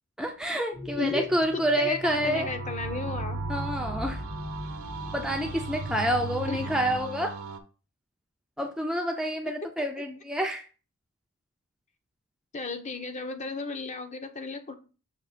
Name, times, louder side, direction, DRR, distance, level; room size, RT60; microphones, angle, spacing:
voice 1, 0.2-2.5 3.5-4.2 5.1-7.3 8.6-10.6, equal, 5° right, 2 dB, 0.5 m, -28 dB
sound 1, 0.7-7.0, left 1 dB, 90° left, 3.1 m, -39 dB
voice 2, 1.5-3.4 6.5-6.6 12.5-14.7, left 3 dB, 30° left, 6 dB, 0.7 m, -34 dB
sound 2, 2.1-7.6, right 4 dB, 85° right, 0.8 m, -37 dB
6.5 x 2.9 x 5.0 m, 0.35 s
head